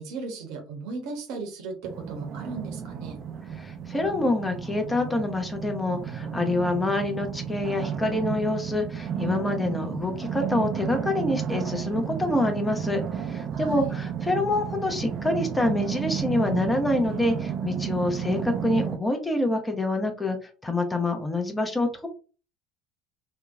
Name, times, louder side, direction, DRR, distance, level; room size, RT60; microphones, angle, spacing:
voice 1, 0.0-3.2 13.5-13.9, right 4 dB, 60° right, 3 dB, 0.8 m, -36 dB
sound 1, 1.8-19.0, right 8 dB, 45° right, 0.3 m, -32 dB
voice 2, 3.6-22.1, left 2 dB, 15° left, 5 dB, 0.6 m, -26 dB
2.8 x 2.2 x 2.4 m, 0.36 s
figure-of-eight pair, 65°, 0 cm